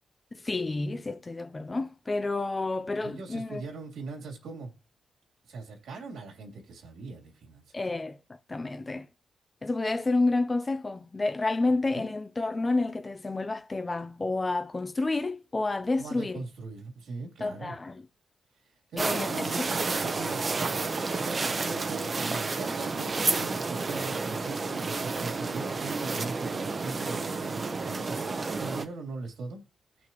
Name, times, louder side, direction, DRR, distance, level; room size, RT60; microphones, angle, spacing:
voice 1, 0.3-3.6 7.7-8.2 8.5-9.1 9.6-16.4 17.4-18.1 19.0-19.7, left 2 dB, 25° left, 0.5 m, -30 dB
voice 2, 3.0-4.7 5.5-7.7 11.9-12.1 16.0-17.8 18.9-29.6, right 3 dB, 85° right, 3.1 m, -40 dB
sound 1, 19.0-28.8, right 4 dB, 40° right, 0.9 m, -30 dB
18.0 x 6.1 x 3.0 m
cardioid pair, 95°, 0 cm